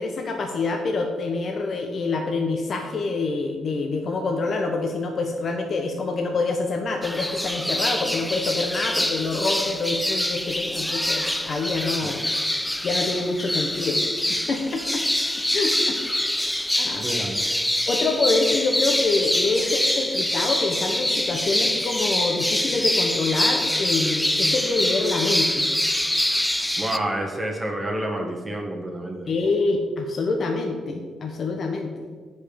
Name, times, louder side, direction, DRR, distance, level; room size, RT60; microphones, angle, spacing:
voice 1, 0.0-12.2 12.8-14.0 14.3-15.0 15.5-16.0 16.3-17.1 17.9-25.7 29.3-31.9, left 3 dB, 50° left, 2 dB, 1.0 m, -26 dB
sound 1, 7.0-27.0, left 1 dB, 5° left, 0.5 m, -25 dB
voice 2, 16.9-17.4 26.8-29.3, right 1 dB, 15° right, 0 dB, 1.4 m, -29 dB
8.2 x 5.4 x 6.9 m, 1.5 s
cardioid pair, 120°, 0 cm